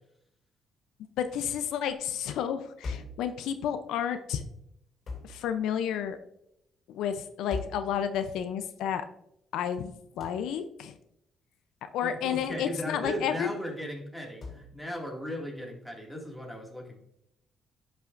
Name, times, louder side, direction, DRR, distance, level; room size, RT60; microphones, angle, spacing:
voice 1, 1.2-4.4 5.2-6.2 6.9-9.0 9.5-10.9 11.9-13.5, left 9 dB, 85° left, 9 dB, 0.5 m, -31 dB
sound 1, 2.8-3.3 5.1-5.4 7.5-7.9 10.2-10.5 12.3-12.6 14.4-14.7, left 3 dB, 50° left, 2.7 m, -38 dB
voice 2, 12.0-17.0, equal, ahead, -1 dB, 2.1 m, -37 dB
11.0 x 5.7 x 2.5 m, 0.76 s
cardioid pair, 90°, 0 cm